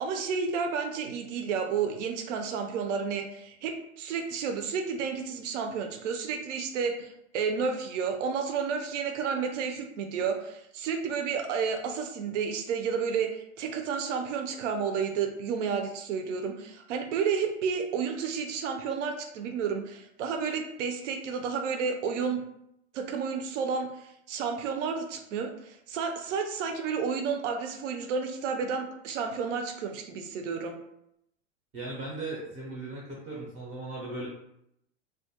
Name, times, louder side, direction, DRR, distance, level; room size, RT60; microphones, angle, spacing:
voice 1, 0.0-22.4 22.9-30.8, right 6 dB, 85° right, 5 dB, 0.5 m, -31 dB
voice 2, 31.7-34.3, right 2 dB, 20° right, -5 dB, 0.4 m, -37 dB
2.2 x 2.1 x 2.7 m, 0.77 s
supercardioid pair, 150°, 36 cm